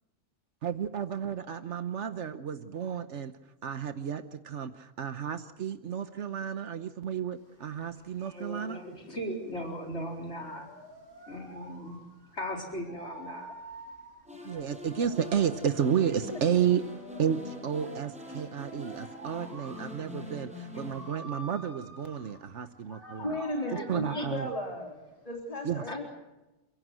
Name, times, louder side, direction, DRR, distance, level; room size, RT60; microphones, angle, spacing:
voice 1, 0.6-3.3 3.6-8.8 14.4-16.8 17.2-23.4 23.9-24.5 25.6-25.8, right 8 dB, 80° right, 10 dB, 1.3 m, -32 dB
sound 1, 7.4-25.4, right 1 dB, 50° right, 6.1 m, -50 dB
voice 2, 8.2-10.7 11.3-12.0 12.3-13.5 22.9-24.3 25.9-26.0, equal, 75° left, 1 dB, 4.6 m, -39 dB
sound 2, 14.3-21.1, left 2 dB, 5° right, 6.8 m, -44 dB
voice 3, 23.2-24.9 25.2-26.0, left 1 dB, 30° left, 1 dB, 3.4 m, -34 dB
29.5 x 17.0 x 7.7 m, 1.0 s
omnidirectional pair, 1.2 m